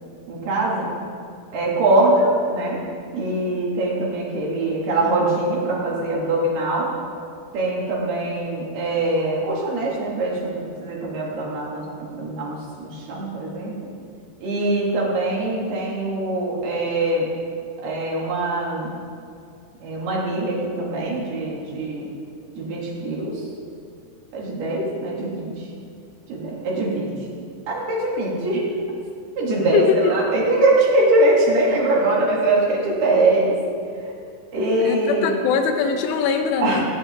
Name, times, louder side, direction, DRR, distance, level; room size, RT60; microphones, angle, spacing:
voice 1, 0.3-0.9 1.5-6.9 7.5-13.9 14.4-17.3 17.8-19.0 19.8-22.1 22.6-23.5 24.3-25.7 26.3-27.2 27.7-28.7 29.4-33.6 34.0-34.1 34.5-35.4 36.6-36.9, right 2 dB, 55° right, -4 dB, 5.1 m, -22 dB
voice 2, 29.7-30.1 34.8-36.8, left 6 dB, 75° left, 4 dB, 3.6 m, -21 dB
19.5 x 17.5 x 4.2 m, 2.4 s
omnidirectional pair, 5.9 m